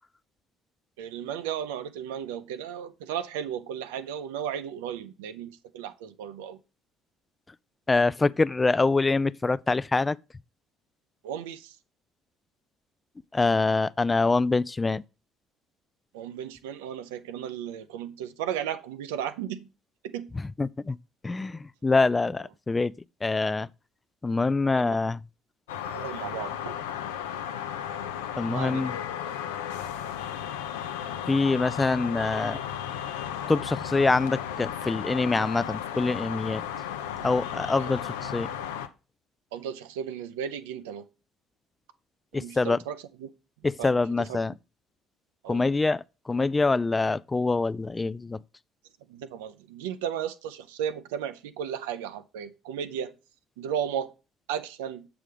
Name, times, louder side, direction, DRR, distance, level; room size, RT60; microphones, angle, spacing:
voice 1, 1.0-6.6 11.2-11.8 16.1-19.7 20.0-20.3 24.7-25.0 25.9-26.8 28.5-29.0 37.8-37.9 39.5-41.1 42.3-43.3 43.8-44.5 45.4-45.7 49.1-53.1 53.6-54.1 54.5-55.1, right 9 dB, 80° right, 0.6 m, -35 dB
voice 2, 7.9-10.2 13.3-15.0 20.6-21.0 21.2-22.9 23.2-23.7 24.2-25.2 28.4-29.0 31.3-32.6 33.5-36.6 37.2-38.5 42.3-42.8 43.6-44.5 45.5-48.4, left 3 dB, 25° left, 0.3 m, -25 dB
sound 1, 25.7-38.9, left 9 dB, 85° left, 0.6 m, -34 dB
7.5 x 4.9 x 4.9 m
hypercardioid pair, 60°, 0 cm